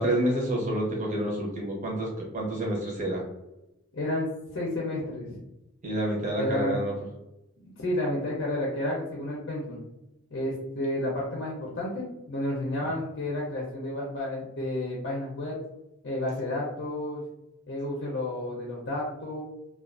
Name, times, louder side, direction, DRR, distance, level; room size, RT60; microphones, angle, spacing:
voice 1, 0.0-3.2 5.8-6.9, right 1 dB, 35° right, -2 dB, 0.8 m, -28 dB
voice 2, 3.9-4.3 4.5-5.4 6.4-6.8 7.6-9.8 10.3-15.6 16.0-17.2 17.7-19.4, left 1 dB, 60° left, -3 dB, 0.6 m, -31 dB
2.4 x 2.3 x 2.4 m, 0.92 s
head